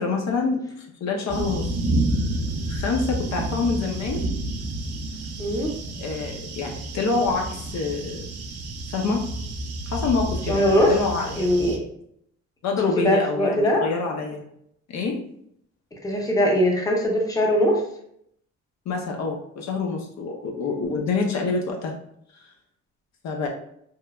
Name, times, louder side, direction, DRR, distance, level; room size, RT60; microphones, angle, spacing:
voice 1, 0.0-1.7 2.7-4.2 6.0-8.2 8.9-9.3 9.9-11.7 12.6-14.4 14.9-15.2 18.9-22.0 22.4-22.5 23.2-23.5, left 4 dB, 65° left, 1 dB, 0.5 m, -26 dB
sound 1, 1.3-11.8, right 1 dB, 55° right, 0.5 m, -30 dB
voice 2, 5.4-5.7 10.5-10.9 11.4-11.8 13.0-13.8 16.0-17.8, equal, 10° left, -1 dB, 0.7 m, -21 dB
3.0 x 2.1 x 2.3 m, 0.72 s
cardioid pair, 90°, 30 cm